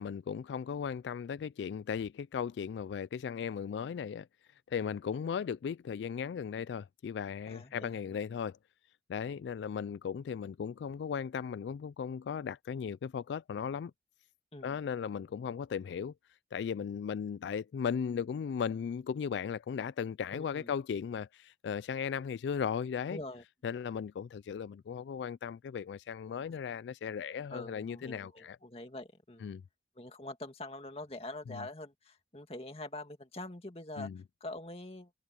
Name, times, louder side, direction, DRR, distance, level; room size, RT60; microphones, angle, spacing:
voice 1, 0.0-4.3 4.7-8.6 9.1-13.9 14.6-16.1 16.5-23.2 23.6-28.6 29.4-29.6 31.5-31.7 34.0-34.2, left 7 dB, 85° left, 0.3 m, -37 dB
voice 2, 7.5-8.0 14.5-14.8 20.3-20.7 23.1-23.4 27.5-29.5 30.0-34.1 34.4-35.1, left 2 dB, 35° left, 2.1 m, -44 dB
head